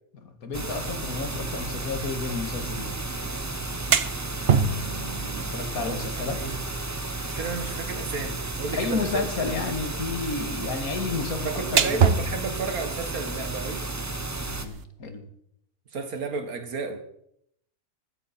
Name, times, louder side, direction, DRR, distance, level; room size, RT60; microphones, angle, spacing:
voice 1, 0.2-3.0 5.5-6.4 8.7-12.0 14.4-15.3, left 4 dB, 85° left, 7 dB, 2.3 m, -31 dB
sound 1, 0.5-14.7, right 2 dB, 15° right, 0.9 m, -33 dB
sound 2, 3.6-14.8, right 6 dB, 50° right, 1.0 m, -30 dB
voice 2, 5.8-6.6 7.2-9.3 11.4-13.9 15.9-17.0, right 4 dB, 90° right, 7 dB, 2.2 m, -33 dB
15.0 x 14.0 x 4.3 m, 0.73 s
omnidirectional pair, 1.5 m